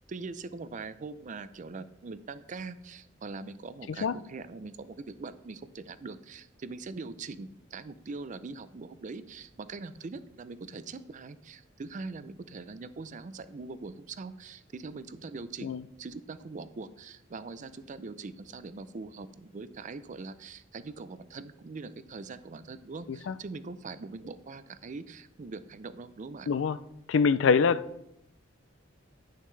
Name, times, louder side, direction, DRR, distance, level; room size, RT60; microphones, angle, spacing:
voice 1, 0.0-15.7 16.0-26.5, right 3 dB, 40° right, 0.4 m, -42 dB
voice 2, 26.5-26.8 27.1-27.8, left 5 dB, 70° left, 0.4 m, -24 dB
10.5 x 6.5 x 3.3 m
head